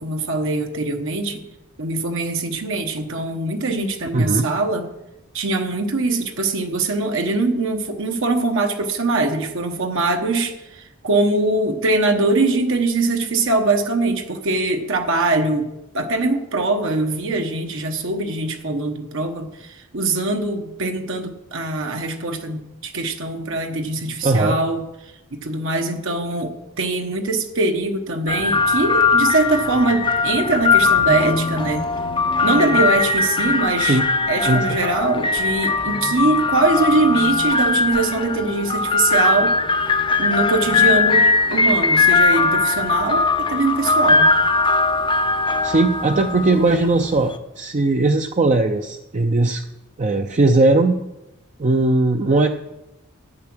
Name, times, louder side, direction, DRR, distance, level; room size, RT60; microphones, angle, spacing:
voice 1, 0.0-1.4 1.8-4.9 5.3-15.7 15.9-24.8 25.3-31.9 32.4-34.0 34.3-39.5 40.2-44.3, right 3 dB, 65° right, 4 dB, 1.0 m, -22 dB
voice 2, 4.1-4.5 24.2-24.6 33.8-34.1 34.4-34.7 45.6-49.6 50.0-51.0 51.6-52.5, right 2 dB, 35° right, 5 dB, 0.6 m, -18 dB
sound 1, 28.3-47.4, left 4 dB, 25° left, 0.6 m, -19 dB
11.0 x 8.6 x 6.1 m, 0.93 s
head